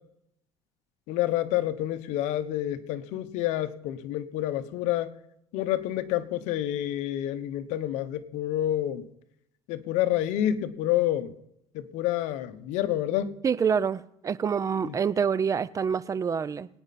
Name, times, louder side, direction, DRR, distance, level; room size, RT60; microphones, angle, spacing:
voice 1, 1.1-5.1 5.5-9.0 9.7-11.3 11.7-13.3 14.8-14.9, left 12 dB, 75° left, 11 dB, 1.0 m, -28 dB
voice 2, 13.4-16.7, right 6 dB, 30° right, 18 dB, 0.6 m, -26 dB
23.5 x 9.4 x 4.2 m, 0.78 s
cardioid pair, 120°, 12 cm